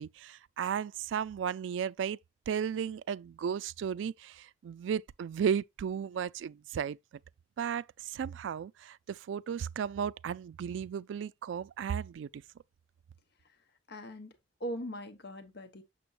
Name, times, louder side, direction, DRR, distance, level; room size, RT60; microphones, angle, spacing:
voice 1, 0.0-2.2 2.5-7.0 7.6-12.4, right 7 dB, 80° right, 0.3 m, -34 dB
voice 2, 13.9-15.8, equal, 60° left, 1.1 m, -41 dB
6.9 x 6.8 x 2.4 m
head